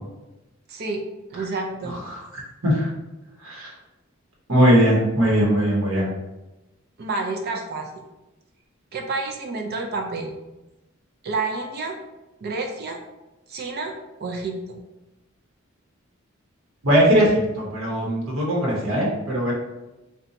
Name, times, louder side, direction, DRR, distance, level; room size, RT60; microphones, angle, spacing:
voice 1, 0.7-1.0 1.3-2.0 7.0-7.9 8.9-10.3 11.2-12.0 12.4-13.0 13.5-13.9 14.2-14.6, right 3 dB, 50° right, 2 dB, 0.4 m, -29 dB
voice 2, 4.5-6.1 16.8-19.5, equal, 85° right, -3 dB, 1.0 m, -19 dB
2.6 x 2.2 x 3.9 m, 1.0 s
head